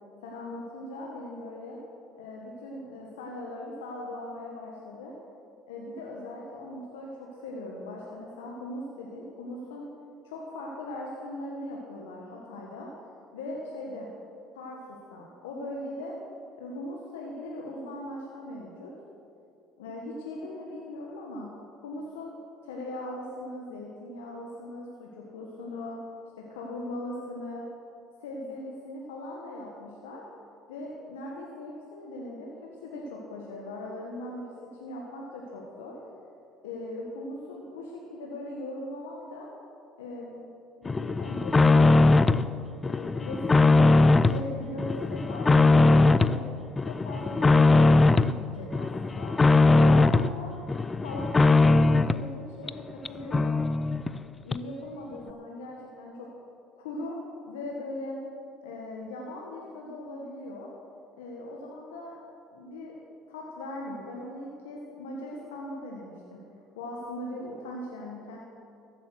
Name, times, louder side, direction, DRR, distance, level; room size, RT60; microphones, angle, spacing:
voice 1, 0.2-1.8 2.2-5.1 5.7-9.9 10.2-12.9 13.3-14.1 14.5-16.1 16.6-18.9 19.8-21.5 21.8-22.3 22.6-26.0 26.4-27.7 28.2-30.2 30.7-36.0 36.6-39.5 40.0-40.4 40.8-42.4 42.8-43.8 44.2-46.5 46.8-49.4 49.8-50.5 51.0-53.6 54.4-56.3 56.8-57.2 57.5-58.2 58.6-60.7 61.2-62.1 62.5-62.9 63.3-66.4 66.7-68.4, left 1 dB, 85° left, -2 dB, 1.4 m, -39 dB
sound 1, 40.9-42.5 42.8-44.4 44.8-46.4 46.8-48.3 48.7-50.3 50.7-52.2 52.7-52.8 53.0-53.1 53.3-54.2 54.5-54.6, left 3 dB, 25° left, 0.5 m, -20 dB
14.5 x 8.4 x 6.4 m, 2.5 s
hypercardioid pair, 65°, 0 cm